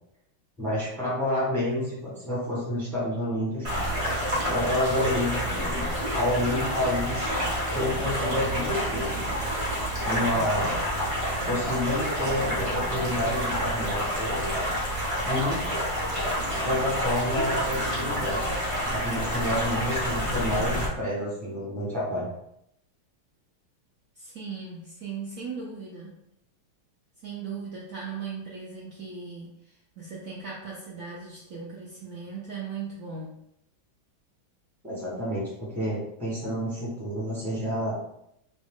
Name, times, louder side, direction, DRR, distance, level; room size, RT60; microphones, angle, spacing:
voice 1, 0.6-3.7 4.5-5.9 6.1-7.3 7.7-9.2 10.0-10.7 11.5-14.6 15.2-15.6 16.6-18.5 18.9-22.3 34.8-38.0, left 1 dB, ahead, -6 dB, 0.8 m, -29 dB
sound 1, 3.6-20.9, equal, 40° right, 0.4 m, -28 dB
voice 2, 10.1-10.5 24.2-26.2 27.2-33.4, right 5 dB, 85° right, -5 dB, 0.7 m, -38 dB
3.0 x 2.6 x 3.5 m, 0.78 s
omnidirectional pair, 2.2 m